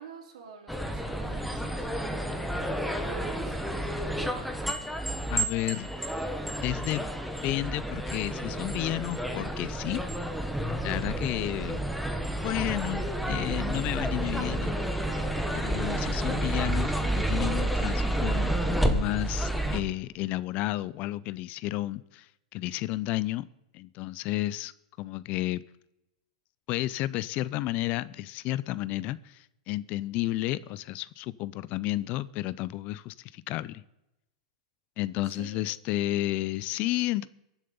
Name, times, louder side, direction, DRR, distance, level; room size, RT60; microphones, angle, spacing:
voice 1, 0.0-2.6 3.0-4.3 35.2-35.6, right 5 dB, 75° right, 2 dB, 3.9 m, -48 dB
sound 1, 0.7-19.8, right 1 dB, ahead, 1.2 m, -30 dB
voice 2, 5.3-5.9 6.6-7.1 7.4-10.0 10.8-11.8 12.4-14.8 15.5-23.5 23.7-24.7 25.0-25.6 26.7-33.8 35.0-37.3, left 16 dB, 40° left, 19 dB, 0.5 m, -32 dB
22.0 x 7.4 x 5.5 m, 0.90 s
supercardioid pair, 135°, 4 cm